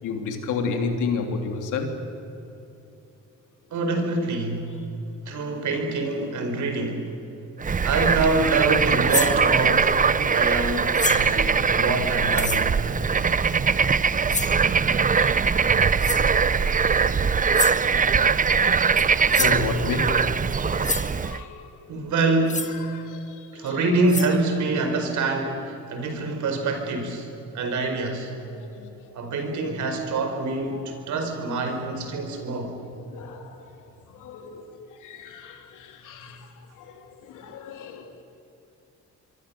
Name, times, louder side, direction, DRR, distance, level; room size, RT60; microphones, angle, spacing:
voice 1, 0.0-2.0 13.9-14.5 15.2-15.6 16.2-18.1 19.4-20.3 20.6-21.7 22.9-23.8 28.5-29.1 30.7-30.8 33.1-33.7 34.1-36.5 36.7-38.2, left 4 dB, 85° left, 4 dB, 3.3 m, -33 dB
voice 2, 3.7-4.7 5.3-7.1 7.8-12.8 17.9-18.1 21.9-22.8 23.5-27.3 27.5-28.3 29.1-32.8, right 3 dB, 75° right, 5 dB, 4.8 m, -26 dB
Bird / Frog, 7.6-21.4, right 5 dB, 25° right, 0.7 m, -21 dB
sound 1, 9.1-9.4 10.9-11.4 12.3-12.7 14.3-14.6 16.0-16.3 17.5-17.8 19.0-19.1 19.3-19.6 20.5-20.6 20.8-21.1 22.5-22.7 23.7-23.8 24.1-24.3, left 4 dB, 25° left, 1.7 m, -28 dB
26.5 x 23.5 x 7.0 m, 3.0 s
cardioid pair, 90°, 30 cm